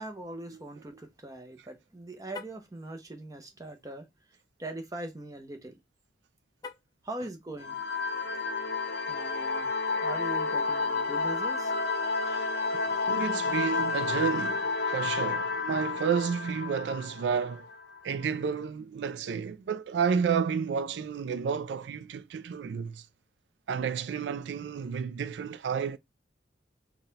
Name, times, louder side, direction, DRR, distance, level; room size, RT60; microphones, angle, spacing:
voice 1, 0.0-4.1 4.6-5.8 7.0-7.8 9.1-9.8 10.0-11.7, right 1 dB, 20° right, 0.7 m, -41 dB
Car, 2.2-2.7 6.6-7.1, left 5 dB, 20° left, 0.4 m, -44 dB
sound 1, 7.6-18.0, left 4 dB, 60° left, 0.6 m, -30 dB
voice 2, 12.9-17.7 18.0-23.1 23.7-26.0, right 6 dB, 75° right, 0.3 m, -31 dB
3.9 x 2.2 x 3.9 m
head